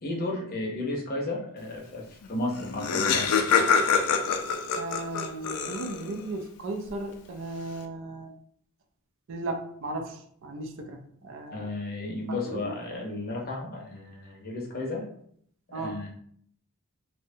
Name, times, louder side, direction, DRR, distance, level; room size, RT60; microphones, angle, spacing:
voice 1, 0.0-3.4 11.5-15.1 15.7-16.1, left 2 dB, 45° left, -1 dB, 0.6 m, -33 dB
Laughter, 2.3-2.4 2.5-6.2, left 6 dB, 85° left, 0.3 m, -25 dB
voice 2, 4.8-8.3 9.3-11.7 12.4-12.7 15.7-16.0, right 2 dB, 60° right, 4 dB, 0.4 m, -36 dB
2.7 x 2.1 x 2.6 m, 0.65 s
head